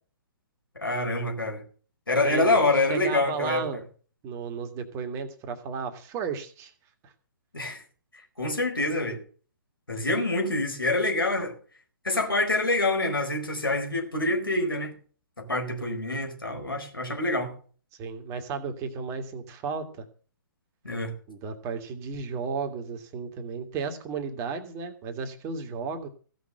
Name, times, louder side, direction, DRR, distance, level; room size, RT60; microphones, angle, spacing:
voice 1, 0.7-1.6 2.1-3.6 7.5-7.8 8.4-9.2 9.9-11.5 12.0-14.9 15.4-17.5 20.8-21.1, left 2 dB, 80° left, 4.6 m, -26 dB
voice 2, 2.2-3.8 4.2-6.7 7.0-7.1 18.0-20.1 21.3-26.1, right 5 dB, 25° right, 1.8 m, -34 dB
15.5 x 6.3 x 7.9 m
figure-of-eight pair, 125°, 12 cm